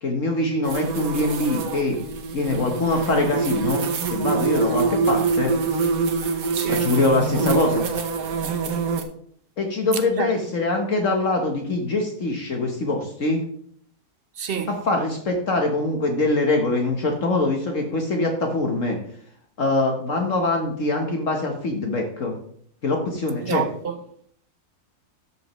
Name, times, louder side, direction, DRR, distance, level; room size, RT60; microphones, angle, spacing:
voice 1, 0.0-2.0 2.3-3.8 4.1-5.5 6.7-7.8 9.6-13.4 14.7-19.0 19.6-22.4 22.8-23.6, left 2 dB, 55° left, 1.4 m, -23 dB
sound 1, 0.6-9.0, right 4 dB, 70° right, 1.4 m, -25 dB
voice 2, 6.5-6.9 10.2-10.3 14.4-14.7 23.4-24.0, right 7 dB, 55° right, 0.7 m, -28 dB
13.0 x 6.4 x 3.1 m
omnidirectional pair, 1.6 m